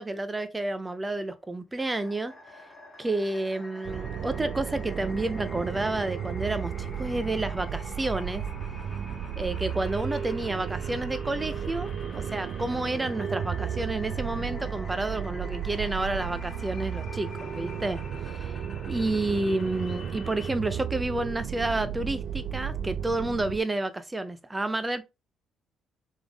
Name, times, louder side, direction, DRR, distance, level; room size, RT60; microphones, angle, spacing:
voice 1, 0.0-2.3 3.0-8.4 9.4-18.6 18.9-25.0, right 2 dB, 15° right, 0.6 m, -30 dB
sound 1, 1.8-20.5, left 2 dB, 25° left, 1.4 m, -47 dB
sound 2, 3.8-23.6, right 8 dB, 65° right, 0.3 m, -34 dB
3.6 x 3.5 x 3.5 m
cardioid pair, 110°, 0 cm